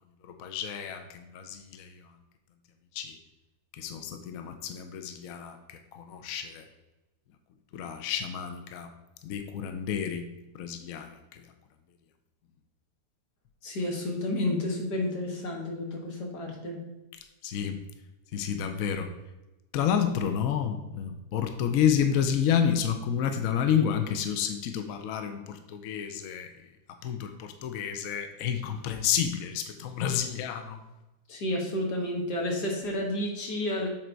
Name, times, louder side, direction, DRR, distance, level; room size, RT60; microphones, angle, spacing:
voice 1, 0.2-2.0 2.9-3.2 3.7-6.7 7.7-8.9 9.2-10.3 10.5-11.4 17.4-17.8 18.3-19.1 19.7-26.5 27.0-30.8, left 8 dB, 65° left, 7 dB, 1.0 m, -30 dB
voice 2, 13.6-16.8 31.3-33.9, left 1 dB, 90° left, 0 dB, 2.0 m, -31 dB
7.6 x 4.0 x 4.5 m, 0.99 s
omnidirectional pair, 1.7 m